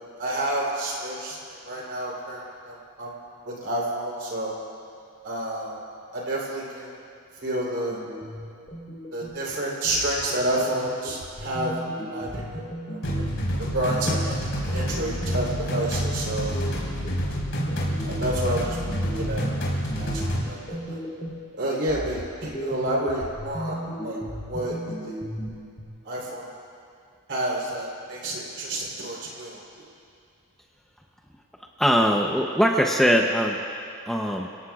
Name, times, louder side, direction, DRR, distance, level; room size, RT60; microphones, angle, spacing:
voice 1, 0.2-1.4 1.6-3.1 3.4-4.5 5.2-5.8 6.1-6.9 7.4-8.0 9.1-12.6 12.9-13.3 13.6-14.4 14.7-16.6 18.0-18.8 19.2-19.5 20.0-21.0 21.5-24.2 24.5-25.2 26.0-26.5 27.3-29.6, right 1 dB, 55° right, -3 dB, 3.7 m, -29 dB
sound 1, 7.9-9.5 9.9-15.5 15.9-21.5 21.9-25.9, equal, 25° left, 3.5 m, -36 dB
sound 2, 13.0-20.4, equal, 65° left, 4.5 m, -28 dB
voice 2, 31.8-33.6 34.1-34.5, equal, ahead, 0 dB, 0.7 m, -21 dB
28.5 x 17.5 x 2.4 m, 2.4 s
head